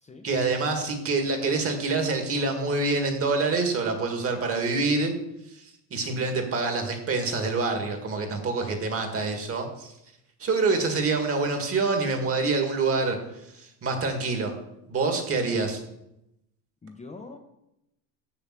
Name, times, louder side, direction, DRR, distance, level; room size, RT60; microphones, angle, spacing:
voice 1, 0.2-5.1 5.9-9.9 10.4-13.2 13.5-14.5 14.9-15.8, right 3 dB, 30° right, 4 dB, 2.0 m, -26 dB
voice 2, 16.8-17.4, left 3 dB, 15° left, 2 dB, 0.8 m, -44 dB
7.1 x 6.9 x 7.5 m, 0.85 s
cardioid pair, 135°, 42 cm